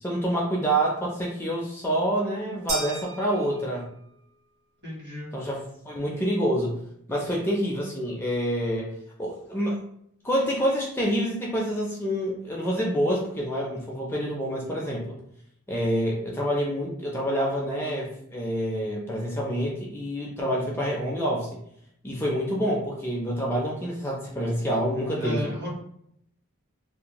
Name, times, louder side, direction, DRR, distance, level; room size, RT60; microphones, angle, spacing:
voice 1, 0.0-3.9 5.3-6.8 7.1-9.8 10.2-15.2 15.7-21.5 22.0-25.5, equal, 10° left, -3 dB, 0.4 m, -27 dB
sound 1, 2.7-4.1, right 2 dB, 70° right, 0.8 m, -35 dB
voice 2, 4.8-5.3 25.2-25.7, left 1 dB, 50° right, -5 dB, 1.3 m, -33 dB
2.5 x 2.1 x 2.9 m, 0.70 s
head